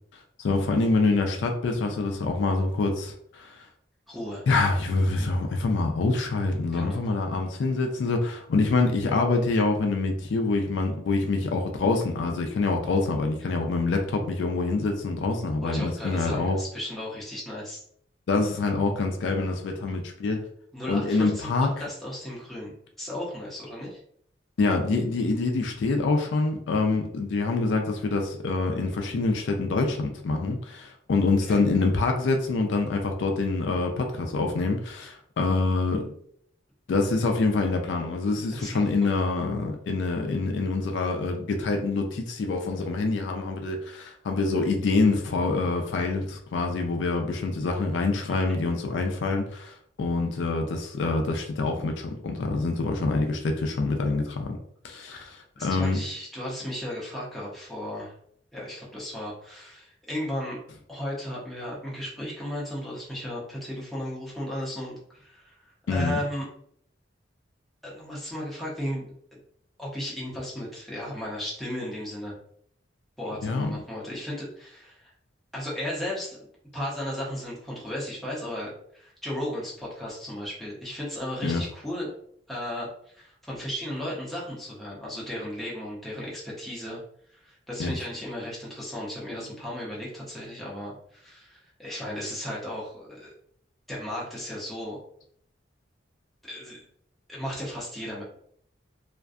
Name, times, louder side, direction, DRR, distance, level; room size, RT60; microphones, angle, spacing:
voice 1, 0.4-3.6 4.5-16.6 18.3-20.5 20.9-21.8 24.6-36.2 36.9-54.6 54.8-56.0 65.9-66.2 73.4-73.8 81.4-81.6 87.8-88.0, left 3 dB, 70° left, 4 dB, 0.4 m, -26 dB
voice 2, 4.1-4.4 6.7-7.1 15.6-17.8 20.7-21.5 21.8-24.0 31.5-31.6 38.5-39.2 48.3-48.5 55.6-58.1 58.5-60.6 60.9-66.5 67.8-69.0 69.3-69.4 69.8-72.4 73.2-75.1 75.5-76.4 76.7-82.1 82.5-87.0 87.3-93.3 93.9-95.0 96.4-96.8 97.3-98.2, left 1 dB, ahead, -6 dB, 0.7 m, -35 dB
2.5 x 2.2 x 2.4 m, 0.67 s
head